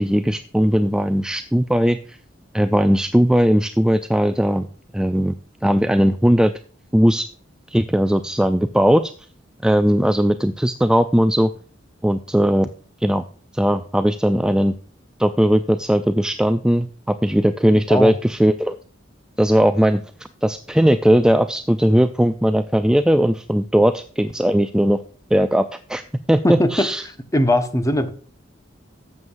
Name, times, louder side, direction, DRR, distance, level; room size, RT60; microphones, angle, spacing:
voice 1, 0.0-2.2 2.5-4.7 4.9-5.3 5.6-6.5 6.9-7.3 7.7-9.1 9.6-11.5 12.0-12.7 13.0-13.2 13.5-14.7 15.2-18.8 19.4-20.0 20.4-25.0 25.3-26.0 26.3-27.0, equal, 5° right, 0.3 m, -18 dB
voice 2, 26.4-26.9 27.3-28.1, left 1 dB, 15° left, 1.0 m, -19 dB
12.5 x 7.9 x 2.5 m
head